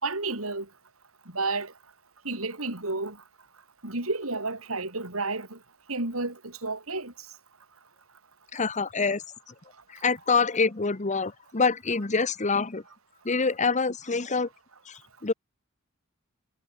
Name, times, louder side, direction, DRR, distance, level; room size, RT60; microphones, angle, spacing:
voice 1, 0.0-0.7 1.3-1.7 2.2-3.2 3.8-5.6 5.9-7.1, right 3 dB, 85° right, 5.1 m, -31 dB
voice 2, 8.5-9.2 10.0-12.8 13.2-14.5 14.9-15.3, left 4 dB, 35° left, 1.1 m, -26 dB
head